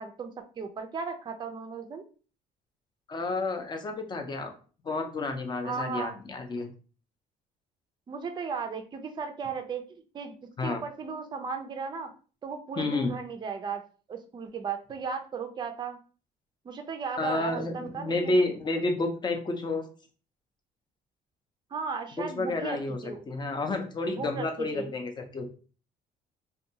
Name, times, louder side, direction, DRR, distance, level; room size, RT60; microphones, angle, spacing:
voice 1, 0.0-2.1 5.6-6.1 8.1-10.3 10.6-12.1 12.4-13.8 14.1-16.0 16.6-18.4 21.7-23.2 24.1-24.9, right 5 dB, 25° right, 6 dB, 0.4 m, -36 dB
voice 2, 3.1-4.5 4.8-6.7 10.6-10.8 12.8-13.1 17.2-19.8 22.2-23.0 23.3-25.5, left 2 dB, 25° left, 5 dB, 0.5 m, -30 dB
2.6 x 2.2 x 2.7 m, 0.38 s
cardioid pair, 110°, 17 cm